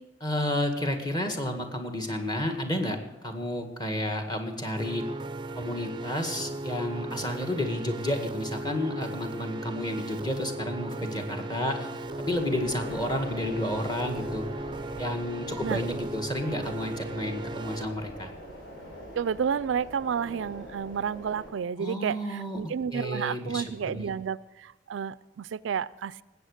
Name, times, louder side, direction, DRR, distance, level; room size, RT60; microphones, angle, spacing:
voice 1, 0.2-5.1 5.6-11.9 12.2-14.5 15.0-18.3 21.8-22.6 22.9-24.1, left 1 dB, 20° left, 5 dB, 1.8 m, -31 dB
sound 1, 4.8-17.8, right 2 dB, 25° right, 0.5 m, -37 dB
sound 2, 12.0-21.5, equal, 70° left, 5.0 m, -44 dB
voice 2, 19.2-26.2, right 7 dB, 80° right, 18 dB, 0.4 m, -31 dB
19.0 x 8.3 x 6.6 m, 1.1 s
head